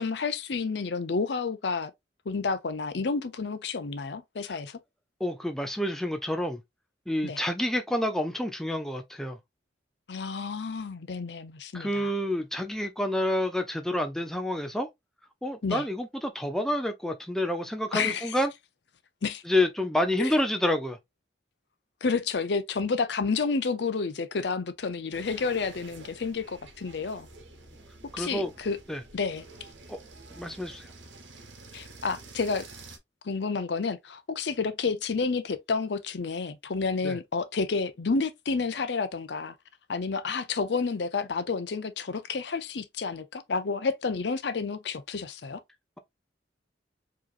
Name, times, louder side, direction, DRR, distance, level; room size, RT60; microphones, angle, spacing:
voice 1, 0.0-1.9 2.3-4.8 7.2-7.4 10.1-12.1 15.6-15.8 17.9-18.4 19.2-19.4 20.2-20.4 22.0-27.3 28.2-28.8 29.1-29.4 31.7-32.7 33.2-39.6 39.9-45.6, left 4 dB, 65° left, 0.6 m, -30 dB
voice 2, 5.2-6.6 7.1-9.4 11.7-14.9 15.4-18.5 19.5-21.0 28.1-28.5 28.9-29.0 29.9-30.0 30.4-30.9 37.0-37.2, left 1 dB, ahead, 0.5 m, -28 dB
sound 1, 25.1-33.0, right 3 dB, 80° right, 1.2 m, -49 dB
4.8 x 3.0 x 2.5 m
head